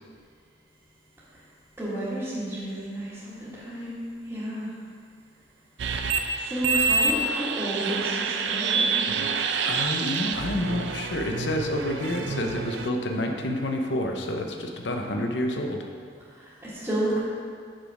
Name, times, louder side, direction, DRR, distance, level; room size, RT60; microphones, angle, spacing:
voice 1, 1.8-4.7 6.4-9.2 16.3-17.2, right 1 dB, 15° right, -14 dB, 1.7 m, -31 dB
sound 1, 5.8-12.9, right 5 dB, 75° right, 0.5 m, -27 dB
voice 2, 9.7-15.9, left 1 dB, 75° left, 3 dB, 0.8 m, -29 dB
6.4 x 6.2 x 4.8 m, 2.1 s
head